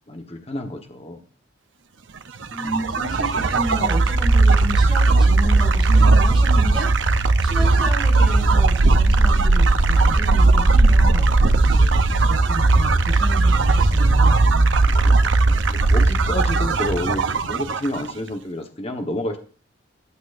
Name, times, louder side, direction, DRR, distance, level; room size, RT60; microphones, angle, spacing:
voice 1, 0.1-1.2 7.5-7.7 11.7-12.1 14.9-15.1 15.7-19.4, left 1 dB, 30° left, 4 dB, 1.2 m, -30 dB
sound 1, 2.4-18.1, right 3 dB, 70° right, 0.7 m, -17 dB
voice 2, 2.5-14.8, equal, 5° right, -4 dB, 5.9 m, -32 dB
15.0 x 9.2 x 2.6 m, 0.39 s
head